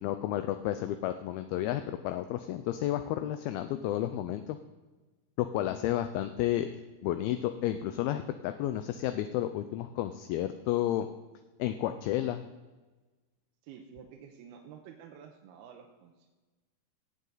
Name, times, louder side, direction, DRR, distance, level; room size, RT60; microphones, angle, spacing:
voice 1, 0.0-4.6 5.4-6.7 7.0-11.1 11.6-12.4, left 13 dB, 80° left, 9 dB, 2.3 m, -31 dB
voice 2, 13.6-16.3, right 8 dB, 80° right, 1 dB, 2.8 m, -50 dB
16.5 x 8.4 x 3.9 m, 1.2 s
omnidirectional pair, 4.7 m